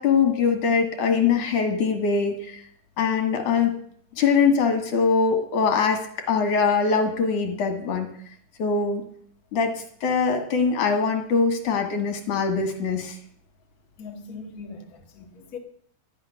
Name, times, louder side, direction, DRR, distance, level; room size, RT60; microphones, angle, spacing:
voice 1, 0.0-2.6 3.0-3.7 4.2-8.1 8.6-9.0 9.5-9.7 10.0-13.2, left 5 dB, 55° left, 2.5 m, -22 dB
voice 2, 14.0-15.6, left 4 dB, 80° left, 0.8 m, -40 dB
13.0 x 5.7 x 9.5 m
omnidirectional pair, 4.9 m